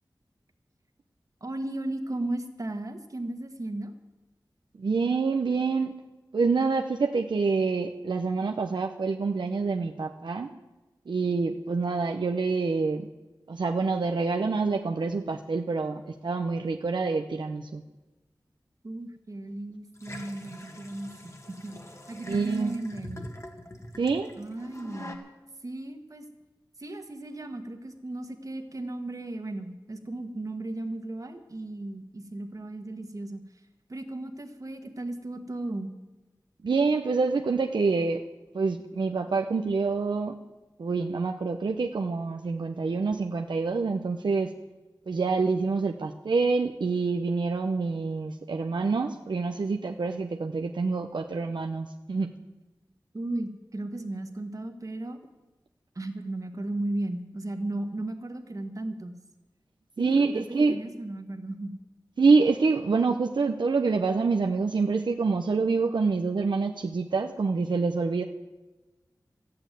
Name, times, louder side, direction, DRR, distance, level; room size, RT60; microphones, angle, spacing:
voice 1, 1.4-3.9 18.8-21.8 22.1-23.2 24.4-25.1 25.6-26.2 26.8-33.4 33.9-35.9 53.1-55.2 55.9-59.2 60.0-61.7, right 2 dB, 45° right, 5 dB, 1.6 m, -35 dB
voice 2, 4.8-6.0 6.3-10.5 11.1-13.1 13.5-17.8 22.3-22.8 24.0-24.3 36.6-38.2 38.5-40.4 40.8-44.5 45.1-52.3 60.0-60.8 62.2-68.2, right 4 dB, 75° right, 3 dB, 0.7 m, -26 dB
sound 1, 20.0-25.1, left 1 dB, 40° left, 1.7 m, -44 dB
13.5 x 8.8 x 9.2 m, 1.1 s
wide cardioid pair, 85°, 8 cm